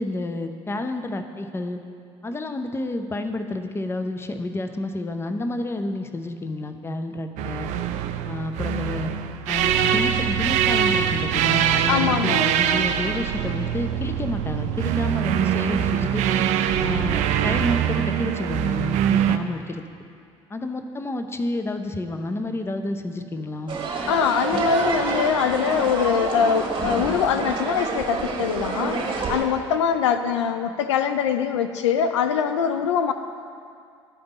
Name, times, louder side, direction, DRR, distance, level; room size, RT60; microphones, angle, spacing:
voice 1, 0.0-1.8 2.2-7.7 8.3-9.1 9.5-16.2 16.8-19.8 20.5-23.8, left 2 dB, 15° left, 7 dB, 0.6 m, -30 dB
sound 1, 7.4-19.4, right 9 dB, 50° right, 0.4 m, -23 dB
voice 2, 11.9-12.5 24.1-29.0 29.3-33.1, left 7 dB, 75° left, 8 dB, 0.4 m, -23 dB
sound 2, 23.7-29.4, right 4 dB, 35° right, 1.5 m, -27 dB
12.0 x 5.2 x 4.0 m, 2.4 s
figure-of-eight pair, 60°, 15 cm